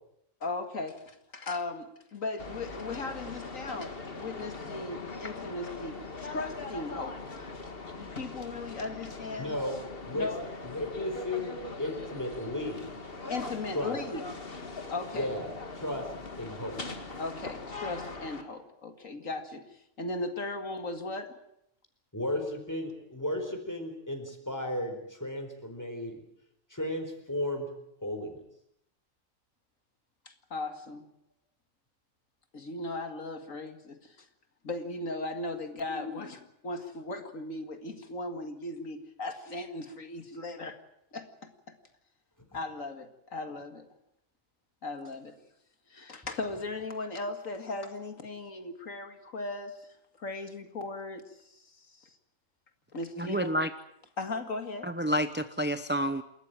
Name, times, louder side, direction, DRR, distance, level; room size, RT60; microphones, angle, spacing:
voice 1, 0.4-7.2 8.0-9.6 10.1-10.4 13.3-14.2 14.9-15.3 17.2-19.6 20.0-21.4 30.3-31.0 32.5-34.3 34.6-40.8 41.1-41.5 42.5-43.9 44.8-45.3 45.9-52.1 52.9-53.5 54.2-54.9, left 2 dB, 70° left, 6 dB, 2.4 m, -37 dB
sound 1, 2.4-18.4, left 3 dB, 40° left, 2.1 m, -41 dB
voice 2, 9.4-10.3 10.6-11.5 11.8-13.0 13.7-14.0 15.1-16.1 16.4-16.8 22.1-26.2 26.7-27.7 28.0-28.4 35.9-36.4 42.5-42.6, left 1 dB, 10° left, 5 dB, 4.3 m, -34 dB
voice 3, 53.2-53.7 54.8-56.2, equal, 10° right, 10 dB, 0.7 m, -29 dB
28.5 x 14.0 x 9.1 m, 0.77 s
omnidirectional pair, 1.4 m